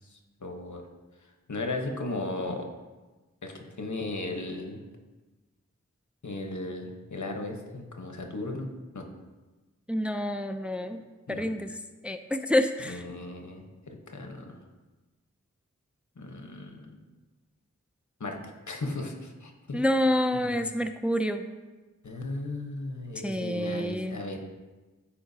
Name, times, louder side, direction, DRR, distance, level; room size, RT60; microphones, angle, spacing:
voice 1, 0.1-0.8 1.5-2.7 3.4-4.8 6.2-8.7 8.9-9.1 11.3-11.5 12.8-14.6 16.2-17.0 18.2-18.4 18.7-19.8 20.3-20.5 22.0-24.4, left 2 dB, 75° left, 3 dB, 1.1 m, -36 dB
voice 2, 9.9-11.0 11.3-11.7 12.0-13.0 19.7-21.4 23.2-24.2, left 1 dB, 5° right, 8 dB, 0.4 m, -27 dB
14.0 x 4.8 x 2.7 m, 1.2 s
wide cardioid pair, 50°, 30 cm